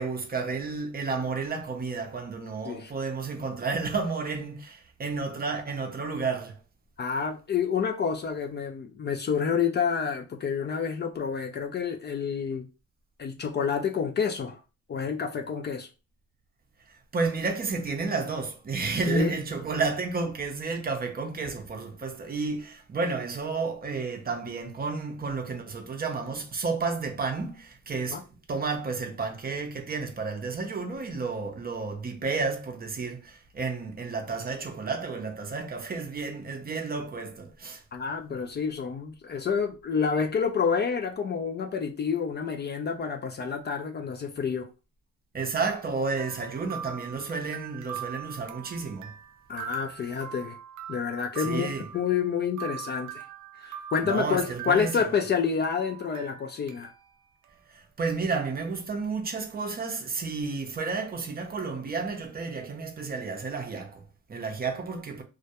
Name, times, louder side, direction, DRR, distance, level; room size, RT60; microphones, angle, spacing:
voice 1, 0.0-6.6 16.9-28.2 28.5-37.8 45.3-49.1 51.4-51.9 54.0-55.1 57.7-65.2, right 4 dB, 30° right, 0.5 m, -31 dB
voice 2, 7.0-12.7 13.2-14.6 14.9-15.9 19.1-19.4 28.1-28.2 37.9-44.7 49.5-50.6 50.9-53.2 53.5-56.9, left 6 dB, 35° left, 0.4 m, -28 dB
sound 1, 46.2-55.4 55.6-57.1 57.4-57.5 58.1-58.2, right 9 dB, 80° right, 0.4 m, -42 dB
2.2 x 2.2 x 2.8 m
cardioid pair, 90°, 30 cm